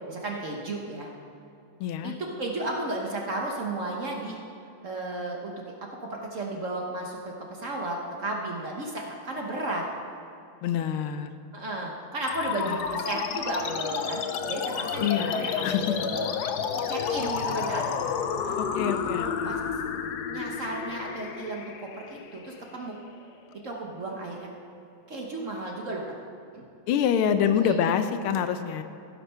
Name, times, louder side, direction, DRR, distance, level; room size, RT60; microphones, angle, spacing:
voice 1, 0.1-1.1 2.0-4.4 4.8-5.5 6.0-9.8 11.5-16.3 16.9-17.8 18.4-19.6 20.3-23.0 23.6-24.5 25.1-26.2 26.5-26.7 27.5-27.8, right 2 dB, 50° right, -1 dB, 1.1 m, -34 dB
voice 2, 1.8-2.1 10.6-11.3 12.6-12.8 15.0-16.0 18.6-19.5 26.9-28.8, left 8 dB, 85° left, 9 dB, 1.5 m, -26 dB
sound 1, 12.3-23.2, left 7 dB, 70° left, 1.0 m, -31 dB
15.5 x 5.9 x 5.6 m, 2.7 s
omnidirectional pair, 2.3 m